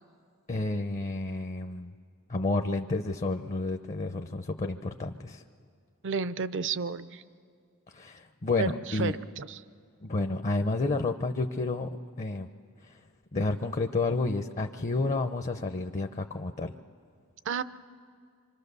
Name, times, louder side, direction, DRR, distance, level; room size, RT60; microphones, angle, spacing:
voice 1, 0.5-1.9 2.3-5.4 7.9-9.2 10.0-12.5 12.8-13.0 13.3-16.7, left 2 dB, 35° left, 7 dB, 0.6 m, -30 dB
voice 2, 6.0-7.2 8.6-9.6 17.5-17.6, right 5 dB, 55° right, 14 dB, 0.6 m, -32 dB
27.0 x 25.0 x 6.8 m, 2.2 s
head